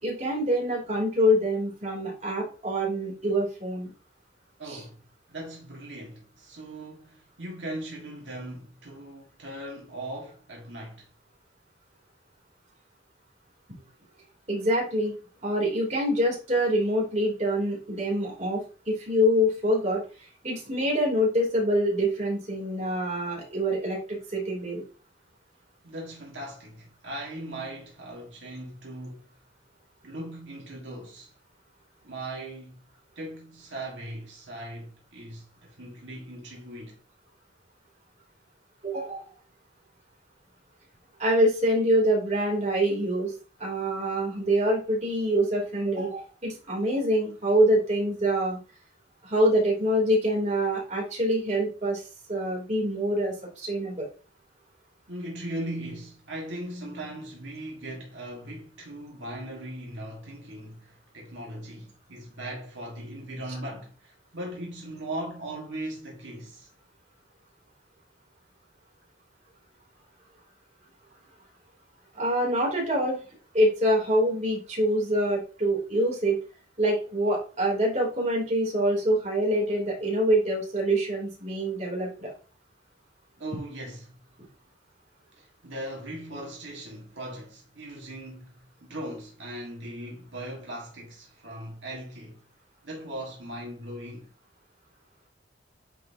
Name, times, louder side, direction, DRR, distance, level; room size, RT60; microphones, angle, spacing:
voice 1, 0.0-3.9 4.6-4.8 14.5-15.1 15.4-20.0 20.4-24.8 38.8-39.2 41.2-43.3 43.6-48.6 49.2-54.1 72.1-73.2 73.5-76.4 76.8-82.3, equal, 40° right, 3.0 m, -25 dB
voice 2, 4.6-5.0 5.3-11.1 25.8-29.3 30.0-31.3 32.0-32.8 33.1-37.0 55.1-66.7 83.4-84.1 85.4-92.4 92.8-94.3, right 1 dB, 80° right, 1.6 m, -39 dB
9.1 x 4.0 x 2.7 m
head